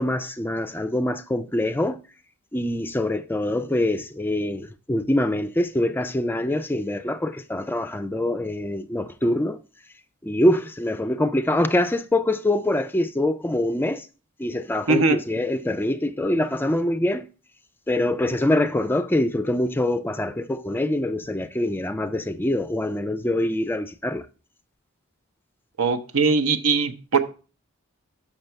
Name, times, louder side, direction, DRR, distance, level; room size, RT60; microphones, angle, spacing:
voice 1, 0.0-2.0 2.5-9.6 10.2-14.1 14.4-17.3 17.9-24.3, left 1 dB, 10° left, 0.3 m, -24 dB
voice 2, 25.8-27.2, right 4 dB, 85° right, 0.8 m, -20 dB
6.7 x 5.9 x 4.4 m
head